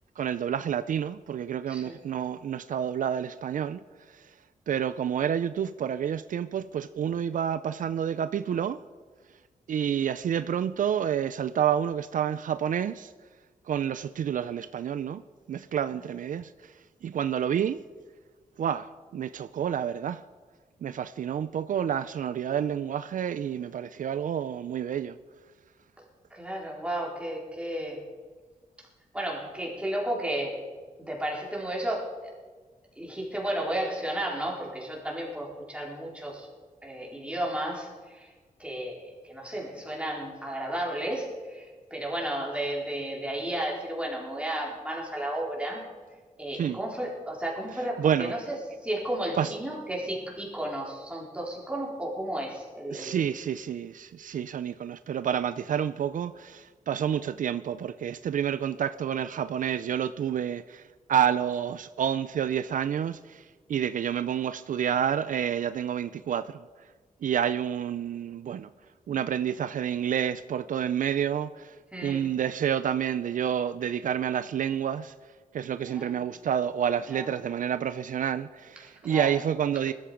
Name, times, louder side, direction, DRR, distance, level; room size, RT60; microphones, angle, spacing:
voice 1, 0.2-3.8 4.1-4.3 4.7-8.8 9.7-13.1 13.7-15.2 15.5-17.8 18.6-20.2 20.8-25.2 46.5-46.8 48.0-48.3 49.4-49.5 52.9-66.6 67.2-68.7 69.1-75.1 75.5-79.9, right 9 dB, 70° right, 0.5 m, -29 dB
voice 2, 1.7-2.0 26.3-28.0 28.8-28.9 29.1-30.6 31.0-32.1 33.0-36.5 36.8-38.3 38.6-45.8 46.4-48.6 48.8-53.2 71.9-72.2 75.9-76.2 77.1-77.3 79.0-79.3, right 1 dB, 10° right, 4.4 m, -33 dB
19.5 x 13.0 x 5.1 m
wide cardioid pair, 130°, 14 cm